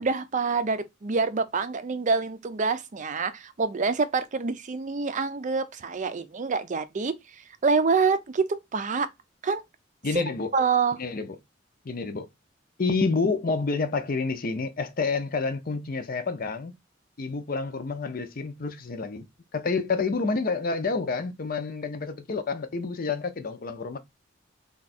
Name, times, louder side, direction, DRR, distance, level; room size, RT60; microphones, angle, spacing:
voice 1, 0.0-7.1 7.6-9.1 9.4-9.6 10.1-10.2 10.5-11.0, right 4 dB, 40° right, 0.5 m, -26 dB
voice 2, 10.0-10.5 11.0-11.4 11.8-12.3 12.8-16.7 17.2-19.3 19.5-24.0, left 4 dB, 50° left, 0.6 m, -28 dB
3.5 x 2.3 x 4.1 m
head